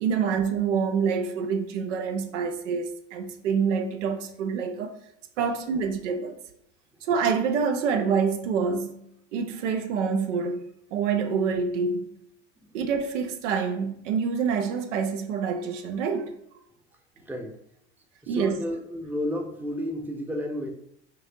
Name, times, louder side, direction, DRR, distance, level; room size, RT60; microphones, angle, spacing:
voice 1, 0.0-5.0 5.4-6.4 7.0-9.0 9.3-12.1 12.7-16.3 18.3-18.6, right 6 dB, 80° right, 0.6 m, -27 dB
voice 2, 17.2-17.5 18.2-20.7, equal, 5° right, 0.6 m, -32 dB
5.6 x 2.6 x 2.7 m
hypercardioid pair, 80°, 37 cm